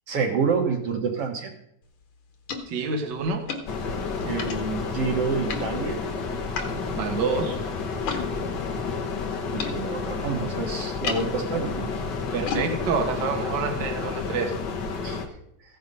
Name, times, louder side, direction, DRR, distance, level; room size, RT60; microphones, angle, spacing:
voice 1, 0.1-1.5 4.3-6.0 9.5-11.9 15.0-15.2, right 5 dB, 55° right, 3 dB, 2.0 m, -28 dB
sound 1, 1.8-8.3 8.5-14.4, left 5 dB, 55° left, 1.6 m, -38 dB
voice 2, 2.7-3.5 6.9-7.6 12.3-14.6, right 4 dB, 80° right, 5 dB, 0.9 m, -27 dB
sound 2, 3.7-15.2, left 4 dB, 80° left, 0.9 m, -30 dB
15.0 x 6.6 x 5.4 m, 0.75 s
omnidirectional pair, 3.8 m